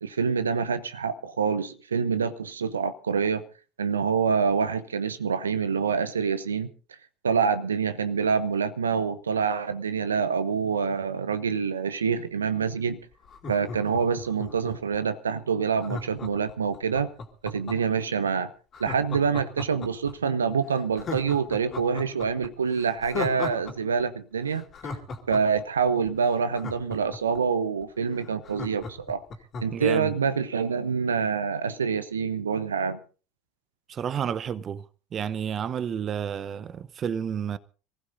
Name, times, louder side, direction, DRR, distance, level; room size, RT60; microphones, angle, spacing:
voice 1, 0.0-3.4 3.8-6.7 7.2-13.0 13.5-17.1 17.4-18.5 18.8-24.6 25.3-29.2 29.6-33.0, right 6 dB, 85° right, 0.7 m, -26 dB
Laughter, 13.2-14.9 15.8-18.0 18.7-20.1 20.5-20.6 21.0-23.7 24.0-24.1 24.5-27.4 27.8-27.9 28.1-29.9 30.2-30.3, left 4 dB, 40° left, 2.8 m, -36 dB
voice 2, 29.7-30.1 33.9-34.8 35.1-37.6, right 8 dB, 40° right, 0.7 m, -30 dB
26.0 x 15.5 x 2.6 m
figure-of-eight pair, 70°, 0 cm